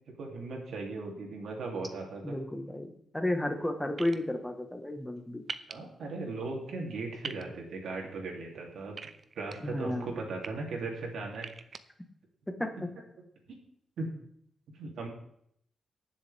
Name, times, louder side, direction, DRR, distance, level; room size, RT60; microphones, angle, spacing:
voice 1, 0.1-2.4 5.7-9.0 9.4-11.5 12.8-12.9 14.0-14.1 14.7-15.1, right 3 dB, 80° right, 0 dB, 3.1 m, -37 dB
voice 2, 2.2-5.4 9.6-10.1 12.6-12.7, left 1 dB, 10° left, 5 dB, 1.4 m, -33 dB
sound 1, 4.0-4.2 5.5-5.7 7.2-7.4 9.0-9.5 10.2-10.5 11.3-11.8, right 5 dB, 45° right, 0.6 m, -40 dB
18.5 x 7.3 x 3.5 m, 0.71 s
wide cardioid pair, 125°, 0 cm